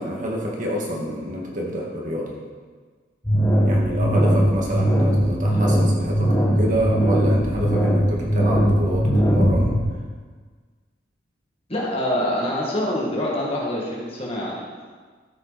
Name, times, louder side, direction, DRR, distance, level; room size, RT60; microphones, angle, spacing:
voice 1, 0.0-2.3 3.6-9.8, equal, 45° right, -3 dB, 2.0 m, -28 dB
sound 1, 3.2-9.8, equal, 15° left, 1.4 m, -19 dB
voice 2, 11.7-14.7, left 1 dB, 35° left, -4 dB, 2.0 m, -25 dB
13.0 x 7.3 x 4.2 m, 1.5 s
head